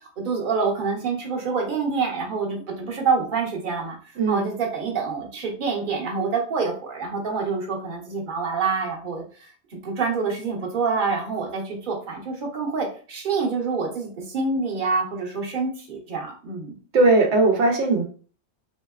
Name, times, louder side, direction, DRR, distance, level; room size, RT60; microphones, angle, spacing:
voice 1, 0.0-16.7, right 4 dB, 50° right, 0 dB, 1.0 m, -27 dB
voice 2, 4.2-4.5 16.9-18.0, right 2 dB, 80° right, 1 dB, 1.0 m, -18 dB
3.2 x 2.8 x 2.3 m, 0.41 s
omnidirectional pair, 1.2 m